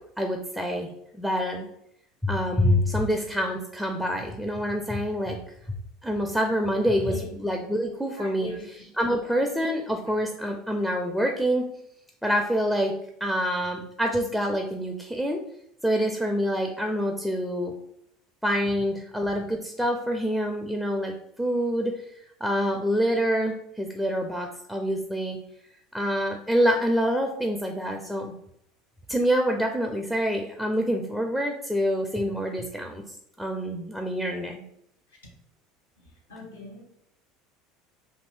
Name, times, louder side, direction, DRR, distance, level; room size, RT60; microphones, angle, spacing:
voice 1, 0.2-1.7 2.2-5.4 6.0-11.7 12.2-12.9 13.2-15.4 15.8-17.7 18.4-25.4 25.9-28.3 29.1-33.0 33.4-34.6, equal, ahead, 2 dB, 0.4 m, -26 dB
voice 2, 6.9-7.3 8.2-8.6 18.6-18.7 36.0-36.8, left 3 dB, 85° left, -3 dB, 1.0 m, -41 dB
2.6 x 2.6 x 3.2 m, 0.74 s
figure-of-eight pair, 70°, 0 cm